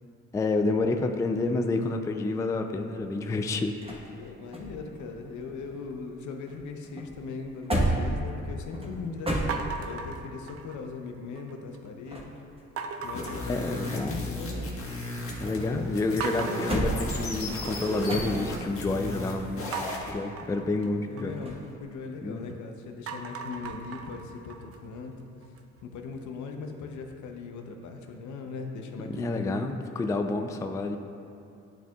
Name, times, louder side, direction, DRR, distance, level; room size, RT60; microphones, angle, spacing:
voice 1, 0.3-3.8 13.5-14.2 15.4-21.3 22.2-22.4 29.1-31.0, left 2 dB, 10° left, 5 dB, 0.3 m, -29 dB
sound 1, 3.0-6.2 6.5-10.1 11.8-13.6 13.9-15.7 16.1-18.7 21.4-21.7, right 1 dB, 20° right, 1.1 m, -33 dB
voice 2, 4.1-12.3 13.0-14.8 20.9-25.1 25.8-29.6, left 4 dB, 75° left, 4 dB, 0.7 m, -39 dB
sound 2, 9.5-11.0 11.4-11.9 12.8-14.3 14.6-15.2 15.6-15.7 16.2-18.3 19.7-22.5 22.9-25.8, right 5 dB, 50° right, 0.5 m, -39 dB
sound 3, 13.0-20.1, left 2 dB, 45° left, 1.4 m, -35 dB
11.0 x 4.5 x 2.3 m, 2.6 s
cardioid pair, 90°, 30 cm